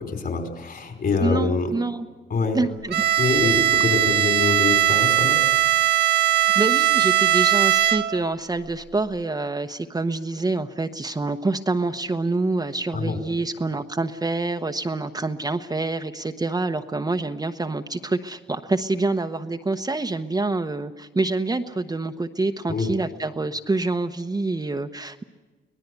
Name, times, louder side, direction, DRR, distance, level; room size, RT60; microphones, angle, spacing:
voice 1, 0.0-1.7 2.3-2.6 3.2-5.4 12.9-13.2 22.7-22.9, left 4 dB, 50° left, 5 dB, 5.2 m, -25 dB
voice 2, 1.2-2.1 2.5-3.0 6.5-25.2, right 3 dB, 20° right, 6 dB, 0.9 m, -26 dB
Bowed string instrument, 2.9-8.3, right 14 dB, 60° right, 0.7 m, -20 dB
24.5 x 18.5 x 8.2 m, 1.3 s
cardioid pair, 90°, 20 cm